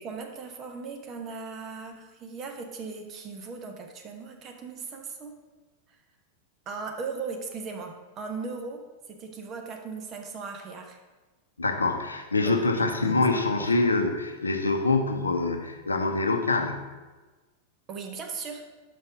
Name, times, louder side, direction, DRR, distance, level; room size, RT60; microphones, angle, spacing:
voice 1, 0.0-5.3 6.7-8.8 9.1-11.0 12.4-13.2 13.6-13.7 17.9-18.6, right 4 dB, 30° right, 3 dB, 1.1 m, -38 dB
voice 2, 11.6-16.8, left 3 dB, 80° left, 5 dB, 0.7 m, -25 dB
5.7 x 5.1 x 5.9 m, 1.2 s
figure-of-eight pair, 90°, 0 cm